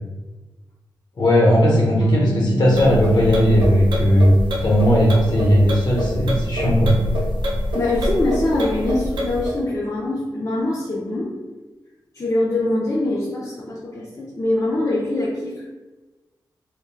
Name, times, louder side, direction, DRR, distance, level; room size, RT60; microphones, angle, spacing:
voice 1, 1.2-7.0, equal, 60° left, -3 dB, 0.9 m, -17 dB
Bass guitar, 2.0-8.3, left 3 dB, 10° right, 0.4 m, -34 dB
sound 1, 2.7-9.6, equal, 90° right, 0.5 m, -25 dB
voice 2, 7.7-11.3 12.2-15.7, left 2 dB, 40° left, -6 dB, 0.6 m, -23 dB
3.0 x 2.2 x 2.2 m, 1.2 s
cardioid pair, 55°, 8 cm